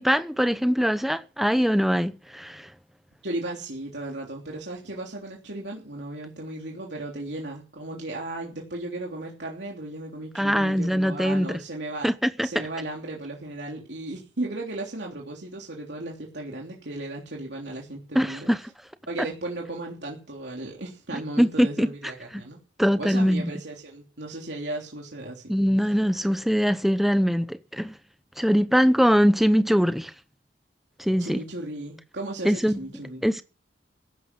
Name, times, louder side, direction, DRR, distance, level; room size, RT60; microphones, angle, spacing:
voice 1, 0.0-2.7 10.3-11.6 12.0-12.1 12.4-12.5 18.1-18.6 21.4-21.9 22.8-23.4 25.5-27.9 28.4-30.1 31.0-31.4 32.4-32.8 33.2-33.4, equal, ahead, 0.8 m, -22 dB
voice 2, 3.2-12.1 12.4-18.5 19.1-22.6 23.0-25.5 31.2-33.3, right 2 dB, 65° right, 3.3 m, -35 dB
16.0 x 11.5 x 5.4 m
head